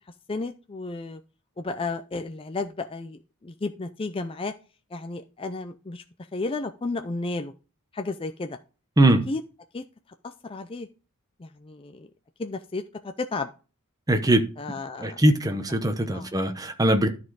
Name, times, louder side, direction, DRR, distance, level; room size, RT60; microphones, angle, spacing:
voice 1, 0.3-1.2 1.6-4.5 4.9-6.0 6.3-7.5 7.9-8.6 9.3-9.4 9.7-9.8 10.2-10.9 11.4-12.1 12.4-13.5 14.6-15.2 16.1-16.3, left 3 dB, 25° left, 0.4 m, -33 dB
voice 2, 14.1-14.5 15.0-17.1, right 1 dB, 15° right, 0.9 m, -21 dB
12.5 x 4.3 x 4.7 m
head